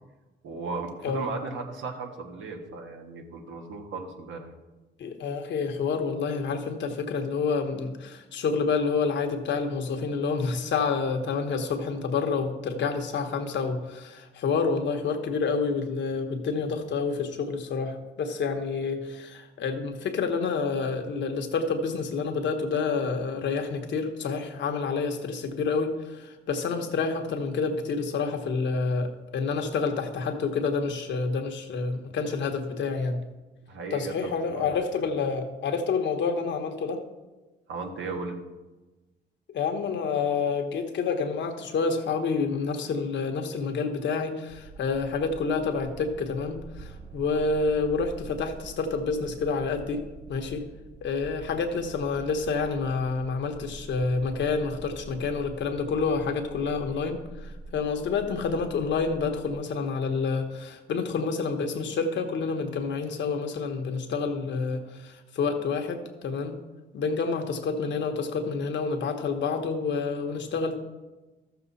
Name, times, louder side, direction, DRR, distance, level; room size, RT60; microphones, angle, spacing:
voice 1, 0.4-4.5 33.7-34.8 37.7-38.4, right 4 dB, 75° right, 3 dB, 1.5 m, -36 dB
voice 2, 5.0-33.2 33.9-37.0 39.5-50.0 50.3-50.6 51.0-66.6 66.9-70.8, left 4 dB, 65° left, 5 dB, 1.3 m, -28 dB
sound 1, 44.5-59.5, right 3 dB, 50° right, 2.1 m, -45 dB
13.5 x 7.0 x 4.1 m, 1.2 s
cardioid pair, 90°, 20 cm